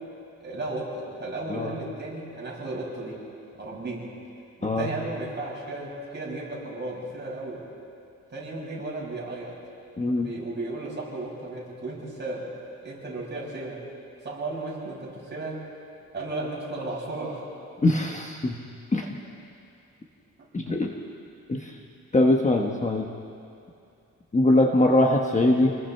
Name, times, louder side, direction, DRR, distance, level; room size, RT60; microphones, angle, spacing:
voice 1, 0.4-3.2 3.6-4.1 4.6-7.6 8.3-9.6 10.2-12.5 12.8-13.8 14.2-15.6 16.1-17.4, right 2 dB, 35° right, -4 dB, 6.5 m, -34 dB
voice 2, 10.0-10.3 17.8-18.6 18.9-19.2 20.5-20.9 21.5-21.8 22.1-23.1 24.3-25.7, left 1 dB, 20° left, 1 dB, 1.3 m, -22 dB
29.0 x 20.5 x 4.5 m, 2.5 s
wide cardioid pair, 130°, 32 cm